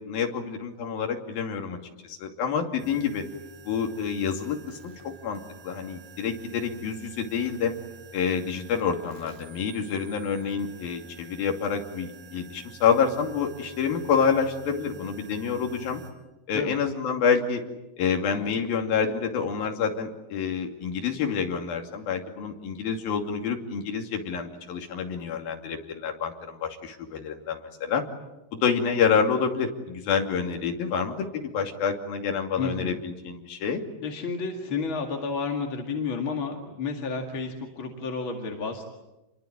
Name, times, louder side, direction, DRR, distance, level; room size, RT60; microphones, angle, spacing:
voice 1, 0.0-1.8 2.0-3.2 3.7-7.8 8.1-16.0 16.5-17.6 18.0-28.0 28.5-33.8, left 6 dB, 65° left, 3 dB, 4.3 m, -28 dB
sound 1, 2.8-16.1, right 5 dB, 80° right, 6.1 m, -49 dB
voice 2, 32.6-33.0 34.0-38.8, left 4 dB, 40° left, 2 dB, 2.2 m, -31 dB
28.5 x 22.0 x 8.8 m, 1.0 s
omnidirectional pair, 4.7 m